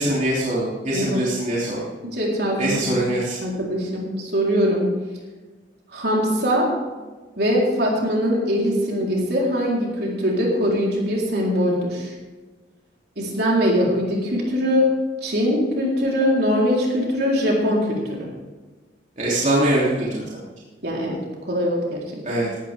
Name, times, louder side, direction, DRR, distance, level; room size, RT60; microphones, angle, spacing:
voice 1, 0.0-1.8 2.6-3.4 19.2-20.2 22.3-22.5, right 1 dB, 45° right, -6 dB, 3.3 m, -22 dB
voice 2, 2.0-2.8 3.4-4.9 5.9-6.7 7.4-12.1 13.2-14.9 15.2-18.3 20.8-21.2 21.5-22.4, equal, 60° right, -3 dB, 4.2 m, -22 dB
17.5 x 12.5 x 3.7 m, 1.3 s
head